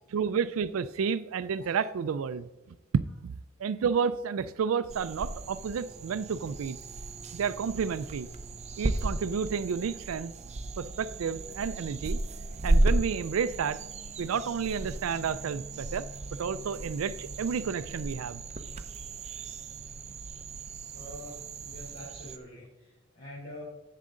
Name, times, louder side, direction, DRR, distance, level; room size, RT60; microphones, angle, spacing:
voice 1, 0.1-2.5 2.9-3.3 3.6-6.8 7.3-8.3 8.8-10.3 10.8-12.2 12.6-13.8 14.2-16.1 16.4-18.4, right 6 dB, 90° right, 12 dB, 0.4 m, -31 dB
sound 1, 4.9-22.4, right 2 dB, 35° right, 0.6 m, -34 dB
voice 2, 20.9-23.6, left 1 dB, 50° left, -6 dB, 3.5 m, -45 dB
10.5 x 7.5 x 3.8 m, 1.0 s
head